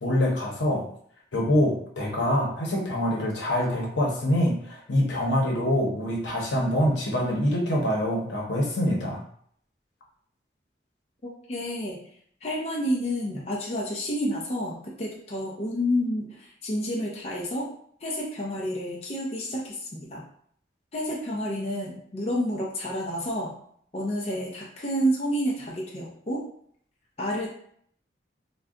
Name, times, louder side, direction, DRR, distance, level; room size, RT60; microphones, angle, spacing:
voice 1, 0.0-0.8 1.3-9.2, left 1 dB, 90° left, -2 dB, 0.8 m, -25 dB
voice 2, 11.5-12.0 12.4-17.7 18.0-20.2 20.9-23.5 23.9-26.4 27.2-27.5, equal, 35° left, -3 dB, 0.5 m, -29 dB
2.4 x 2.2 x 3.6 m, 0.63 s
head